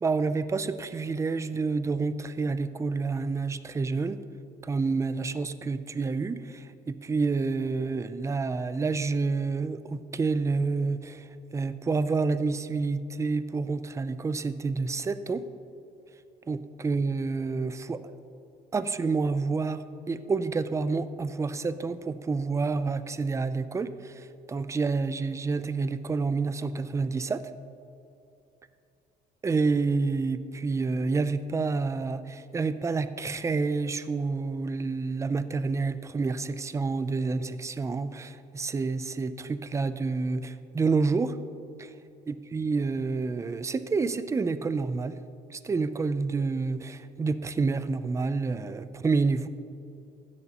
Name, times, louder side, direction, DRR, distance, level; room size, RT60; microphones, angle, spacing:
voice 1, 0.0-4.2 4.6-15.4 16.5-18.0 18.7-27.4 29.4-41.4 41.8-41.9 42.3-45.2 45.5-49.5, right 4 dB, 15° right, 13 dB, 0.4 m, -28 dB
15.5 x 10.5 x 2.9 m, 2.7 s
cardioid pair, 110°, 17 cm